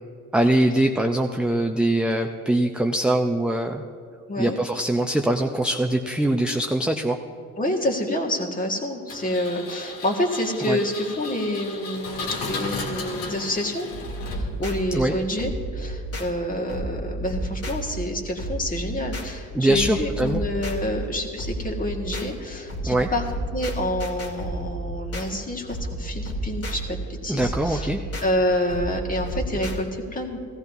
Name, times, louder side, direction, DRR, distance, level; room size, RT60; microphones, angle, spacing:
voice 1, 0.3-3.8 4.4-7.2 10.7-10.8 14.9-15.1 19.5-20.4 22.8-23.1 27.3-28.0, right 1 dB, 5° right, 3 dB, 0.5 m, -22 dB
voice 2, 7.6-13.9 14.3-23.2 23.5-27.9 28.2-30.4, left 1 dB, 25° left, 0 dB, 1.8 m, -28 dB
Engine, 9.1-14.8, left 4 dB, 80° left, 1.8 m, -34 dB
sound 1, 13.9-29.8, right 1 dB, 45° left, 2.1 m, -32 dB
16.5 x 14.5 x 2.7 m, 2.3 s
supercardioid pair, 85°, 33 cm